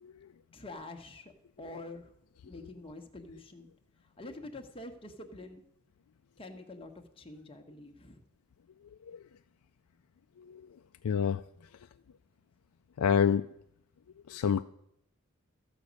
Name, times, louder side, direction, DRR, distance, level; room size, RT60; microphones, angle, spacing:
voice 1, 0.5-1.3 1.6-2.1 2.4-3.7 4.0-5.6 6.4-8.2, left 2 dB, 25° left, 1.2 m, -46 dB
voice 2, 10.4-10.7 11.0-11.4 13.0-13.5 14.3-14.6, left 7 dB, 90° left, 0.4 m, -28 dB
14.0 x 5.2 x 8.2 m
head